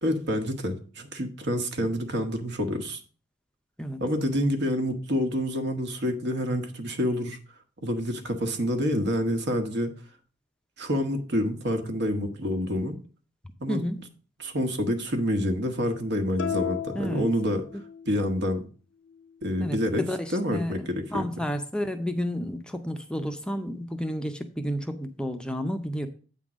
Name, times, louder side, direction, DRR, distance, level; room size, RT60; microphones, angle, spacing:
voice 1, 0.0-3.0 4.0-7.4 7.8-9.9 10.8-13.0 13.6-13.8 14.4-17.7 18.1-18.6 19.4-20.0 20.3-21.4, equal, 60° right, 6 dB, 1.2 m, -27 dB
voice 2, 13.7-14.0 16.9-17.3 19.6-26.1, equal, 5° left, 6 dB, 0.5 m, -31 dB
sound 1, 16.4-18.2, left 8 dB, 70° left, 0.5 m, -33 dB
8.5 x 3.7 x 6.1 m, 0.39 s
head